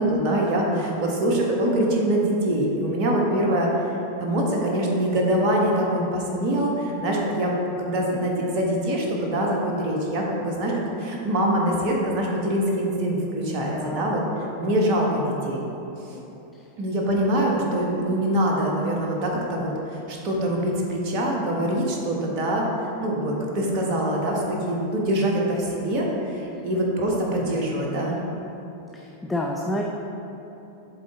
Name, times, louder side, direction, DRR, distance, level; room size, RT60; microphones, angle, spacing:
voice 1, 0.0-3.7 4.2-7.5 7.8-14.2 14.6-15.6 16.1-16.2 16.8-22.7 23.0-28.2, right 1 dB, 40° right, -1 dB, 1.1 m, -24 dB
voice 2, 0.7-1.2 13.5-14.2 16.5-16.7 28.9-29.8, left 1 dB, 10° left, -1 dB, 0.4 m, -30 dB
7.4 x 3.9 x 3.8 m, 3.0 s
figure-of-eight pair, 90°, 0 cm